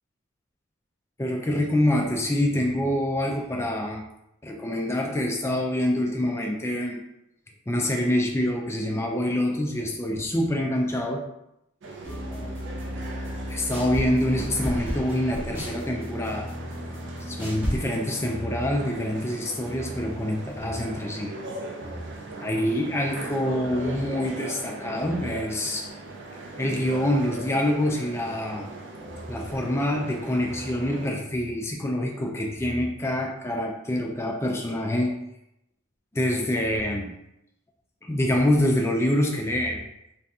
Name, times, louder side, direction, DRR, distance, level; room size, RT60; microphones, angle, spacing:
voice 1, 1.2-4.0 4.4-7.0 7.7-11.3 12.1-12.5 13.5-16.5 17.3-21.3 21.8-22.0 22.4-25.9 26.6-28.7 29.3-35.2 36.1-37.1 38.0-39.8, left 1 dB, 10° left, 1 dB, 0.3 m, -26 dB
sound 1, 11.8-31.1, right 2 dB, 60° right, 0.5 m, -39 dB
sound 2, 12.0-17.9, equal, 10° right, 0.7 m, -33 dB
2.6 x 2.4 x 3.4 m, 0.83 s
head